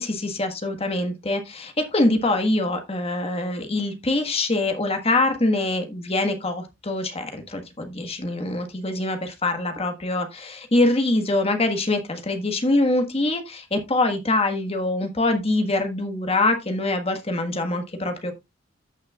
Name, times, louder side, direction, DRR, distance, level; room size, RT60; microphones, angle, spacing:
voice 1, 0.0-18.3, left 2 dB, 30° left, 1.4 m, -24 dB
14.0 x 6.4 x 2.3 m
head